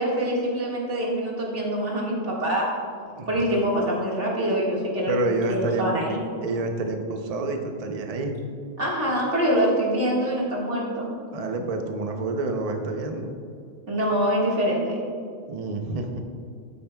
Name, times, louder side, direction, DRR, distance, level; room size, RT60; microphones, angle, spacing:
voice 1, 0.0-2.7 3.3-6.2 8.8-11.1 13.9-15.0, equal, 80° right, -4 dB, 2.2 m, -25 dB
voice 2, 5.1-6.0 6.4-8.4 11.3-13.4 15.5-16.2, right 2 dB, 40° right, 4 dB, 0.7 m, -28 dB
12.0 x 9.1 x 2.3 m, 2.3 s
omnidirectional pair, 1.2 m